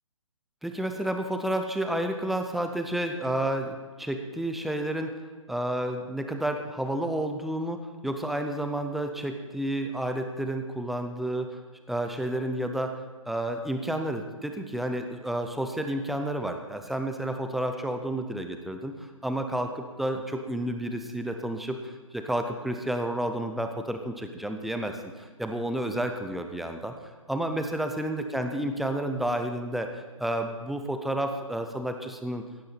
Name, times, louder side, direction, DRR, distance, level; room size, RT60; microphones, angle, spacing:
voice 1, 0.6-5.1 5.5-11.6 11.9-13.0 13.3-26.9 27.3-32.4, right 1 dB, ahead, 5 dB, 0.5 m, -31 dB
15.5 x 10.5 x 4.2 m, 1.3 s
figure-of-eight pair, 140°, 17 cm